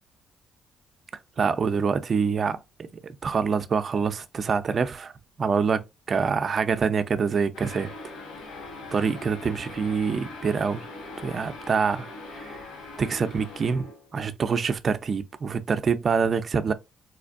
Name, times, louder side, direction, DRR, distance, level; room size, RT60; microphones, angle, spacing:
voice 1, 1.4-5.1 5.4-7.9 8.9-10.9 11.2-12.1 12.3-12.6 13.0-13.9 14.1-16.7, right 5 dB, 45° right, 0.5 m, -26 dB
sound 1, 7.5-14.2, left 2 dB, 85° left, 1.2 m, -41 dB
4.3 x 2.5 x 2.4 m
cardioid pair, 90°, 0 cm